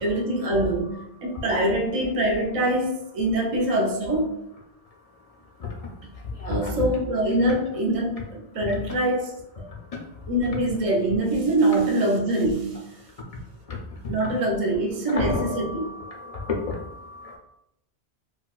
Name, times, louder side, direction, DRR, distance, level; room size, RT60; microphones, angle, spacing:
voice 1, 0.0-4.4 6.5-9.3 9.6-9.7 10.3-12.8 14.1-15.8, right 1 dB, 45° right, 1 dB, 0.5 m, -24 dB
voice 2, 6.4-6.7 13.7-13.8 15.1-17.4, left 4 dB, 50° left, -1 dB, 0.4 m, -31 dB
4.0 x 2.2 x 2.3 m, 0.82 s
omnidirectional pair, 1.1 m